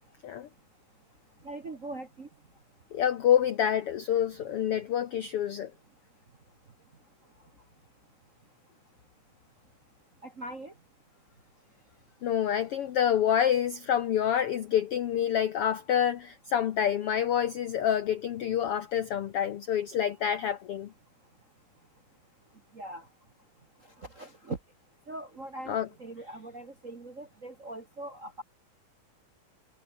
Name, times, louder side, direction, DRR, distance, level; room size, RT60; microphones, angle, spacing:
voice 1, 1.4-2.3 10.2-10.7 22.7-23.1 23.8-24.6 25.1-28.4, right 2 dB, 40° right, 1.2 m, -41 dB
voice 2, 2.9-5.7 12.2-20.9 25.7-25.9, left 9 dB, 75° left, 1.4 m, -27 dB
omnidirectional pair, 3.8 m